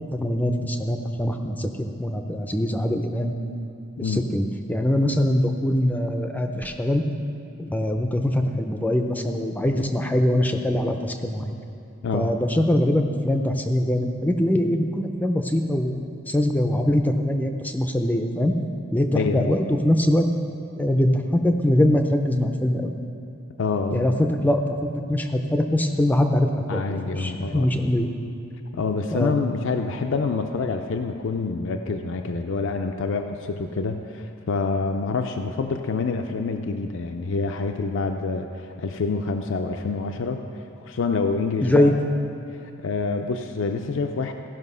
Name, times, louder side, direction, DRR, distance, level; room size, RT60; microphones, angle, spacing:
voice 1, 0.1-3.3 4.0-7.0 7.6-11.5 12.1-18.5 18.9-20.3 20.8-22.9 23.9-28.1 29.1-29.3 41.6-41.9, left 1 dB, 10° left, 5 dB, 0.5 m, -23 dB
voice 2, 19.1-19.5 23.6-24.1 26.7-27.7 28.7-40.4 40.8-41.9 42.8-44.3, left 4 dB, 65° left, 5 dB, 0.4 m, -27 dB
15.5 x 5.6 x 5.5 m, 2.6 s
head